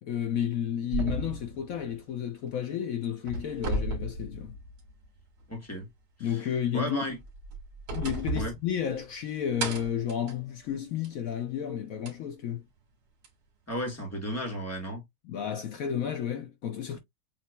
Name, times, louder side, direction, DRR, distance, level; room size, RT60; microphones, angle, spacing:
voice 1, 0.0-4.6 6.2-7.1 7.9-12.6 15.2-17.0, left 9 dB, 85° left, 0.7 m, -32 dB
sound 1, 0.9-2.7 3.0-5.1 5.4-5.5 7.1-9.2 9.6-11.3 12.1-12.2 13.2-13.3, right 2 dB, 85° right, 2.9 m, -35 dB
voice 2, 5.5-5.9 6.2-6.4 6.7-7.2 8.3-8.5 13.7-15.0 16.9-17.0, equal, 10° left, 1.3 m, -34 dB
7.5 x 2.9 x 2.2 m
omnidirectional pair, 2.3 m